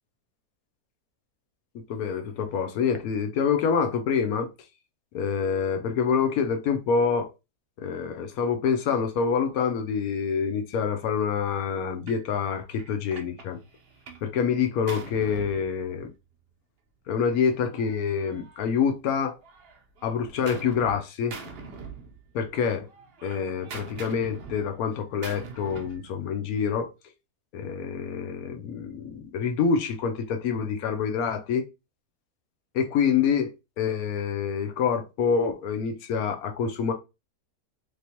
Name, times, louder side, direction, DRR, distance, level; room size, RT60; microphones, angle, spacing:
voice 1, 1.9-4.5 5.1-7.3 7.8-13.6 14.2-16.1 17.1-19.4 20.0-21.4 22.3-22.9 23.2-26.9 27.5-31.6 32.7-36.9, left 6 dB, 70° left, 1.0 m, -26 dB
Gunshot gunfire, 12.1-12.3 12.8-14.3 14.6-16.3 17.2-19.1 19.4-21.0 21.3-22.5 22.8-26.0, right 4 dB, 55° right, 0.6 m, -43 dB
3.3 x 2.9 x 2.8 m
omnidirectional pair, 1.7 m